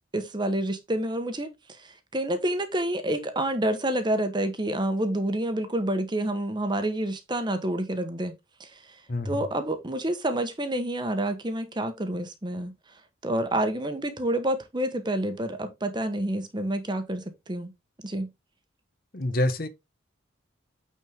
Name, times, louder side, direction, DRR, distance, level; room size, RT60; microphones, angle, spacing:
voice 1, 0.1-12.7 13.2-17.7 18.0-18.3, right 1 dB, 25° right, 1.1 m, -28 dB
voice 2, 9.1-9.4 19.1-19.7, left 1 dB, 50° left, 1.0 m, -27 dB
9.0 x 4.3 x 3.5 m
head